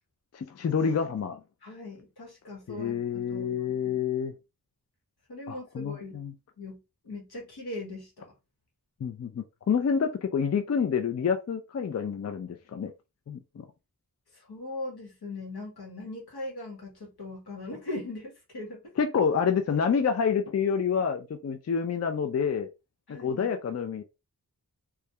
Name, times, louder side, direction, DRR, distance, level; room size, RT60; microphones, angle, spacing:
voice 1, 0.3-1.4 2.7-4.3 5.5-6.3 9.0-12.9 13.3-13.7 19.0-22.7 23.2-24.0, left 6 dB, 45° left, 0.4 m, -28 dB
voice 2, 1.6-4.0 5.3-6.2 6.6-8.3 14.3-18.9 23.1-23.5, left 2 dB, 80° left, 1.2 m, -40 dB
2.3 x 2.2 x 2.8 m
wide cardioid pair, 60°, 38 cm